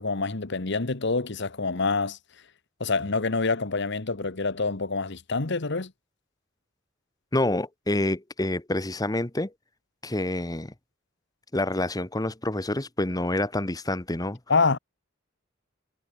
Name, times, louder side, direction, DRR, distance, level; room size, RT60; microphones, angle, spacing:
voice 1, 0.0-2.2 2.8-5.9 14.5-14.8, left 4 dB, 60° left, 1.3 m, -26 dB
voice 2, 7.3-9.5 10.0-10.7 11.5-14.4, left 1 dB, 20° left, 1.3 m, -27 dB
head